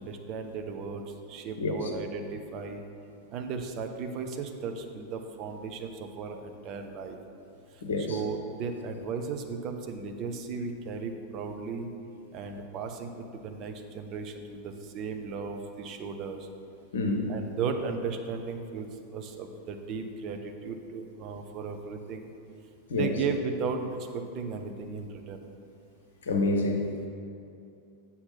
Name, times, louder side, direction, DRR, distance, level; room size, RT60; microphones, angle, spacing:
voice 1, 0.0-2.8 3.3-7.2 7.7-11.9 12.3-16.5 17.3-22.3 22.9-23.9 24.1-25.4, right 5 dB, 35° right, 5 dB, 0.7 m, -36 dB
voice 2, 1.6-1.9 7.8-8.2 16.9-17.2 22.9-23.1 26.3-27.1, left 2 dB, 65° left, 2 dB, 0.8 m, -28 dB
7.8 x 5.7 x 4.1 m, 2.6 s
figure-of-eight pair, 90°, 0 cm